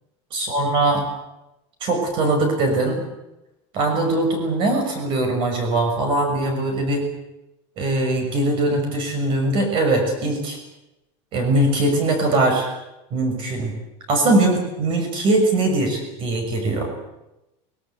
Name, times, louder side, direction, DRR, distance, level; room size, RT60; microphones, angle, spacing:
voice 1, 0.3-1.0 1.8-3.0 3.7-7.0 7.8-10.6 11.3-12.7 13.1-13.7 14.1-16.9, right 2 dB, 35° right, 4 dB, 6.4 m, -21 dB
24.0 x 20.0 x 8.4 m, 0.92 s
cardioid pair, 180°, 15 cm